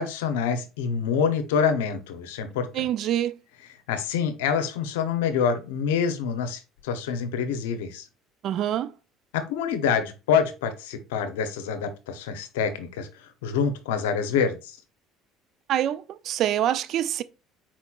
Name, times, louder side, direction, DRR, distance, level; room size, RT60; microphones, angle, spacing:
voice 1, 0.0-2.7 3.0-3.1 3.9-8.0 9.3-14.8, left 6 dB, 90° left, 0.7 m, -26 dB
voice 2, 2.7-3.4 8.4-8.9 15.7-17.2, right 11 dB, 60° right, 0.4 m, -25 dB
4.4 x 4.3 x 2.4 m
supercardioid pair, 85°, 0 cm